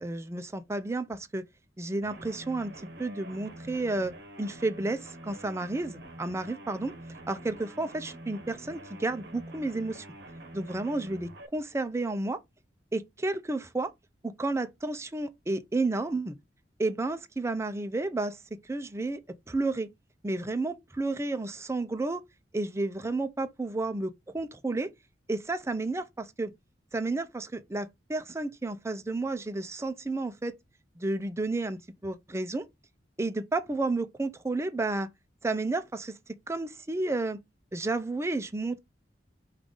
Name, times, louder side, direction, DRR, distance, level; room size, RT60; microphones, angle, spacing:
voice 1, 0.0-1.4 1.8-6.9 7.3-10.1 10.5-12.4 12.9-13.9 14.2-16.3 16.8-19.2 19.5-19.9 20.2-22.2 22.5-24.9 25.3-26.5 26.9-30.6 31.0-32.7 33.2-35.1 35.4-36.1 36.5-37.4 37.7-38.8, right 2 dB, 15° right, 0.4 m, -31 dB
sound 1, 2.0-11.5, right 1 dB, 65° right, 0.8 m, -46 dB
5.2 x 2.4 x 3.7 m
head